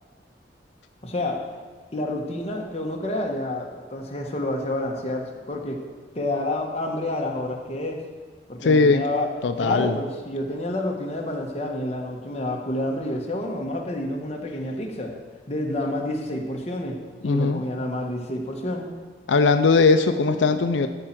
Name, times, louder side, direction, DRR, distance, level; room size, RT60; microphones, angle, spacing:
voice 1, 1.0-1.4 1.9-5.8 6.1-8.0 8.5-9.3 9.6-15.2 15.5-17.0 17.2-18.9, left 1 dB, 35° left, 1 dB, 1.3 m, -29 dB
voice 2, 8.6-9.0 9.4-9.9 17.2-17.6 19.3-20.9, left 4 dB, 90° left, 8 dB, 0.5 m, -19 dB
13.5 x 4.5 x 7.4 m, 1.4 s
head